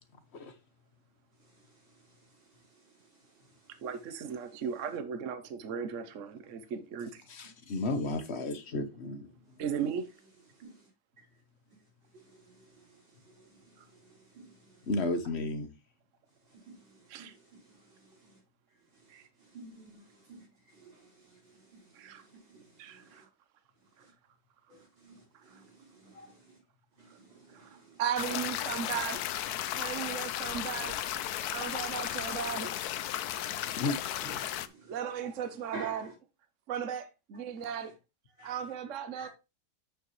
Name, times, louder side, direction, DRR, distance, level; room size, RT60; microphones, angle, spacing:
voice 1, 1.4-3.8 10.5-10.9 12.1-14.9 16.5-18.4 18.9-23.2 24.0-24.1 24.7-26.6 27.0-28.0 34.2-34.9 35.7-36.1 38.4-38.5 39.1-39.3, right 3 dB, 85° right, 6.0 m, -53 dB
voice 2, 3.8-7.2 9.6-10.1 13.8-13.9 17.1-17.3 19.1-19.3 21.9-22.2 22.5-23.3 24.0-24.1 25.3-25.6 27.1-27.2 27.5-29.2 29.7-31.0 31.5-32.7 34.5-36.1 36.7-37.9 38.4-39.3, right 8 dB, 55° right, 0.9 m, -37 dB
voice 3, 7.3-9.3 14.9-15.7 33.7-34.0, left 2 dB, 45° left, 1.0 m, -33 dB
sound 1, 28.2-34.7, left 11 dB, 70° left, 1.0 m, -35 dB
8.5 x 6.9 x 3.1 m
omnidirectional pair, 2.1 m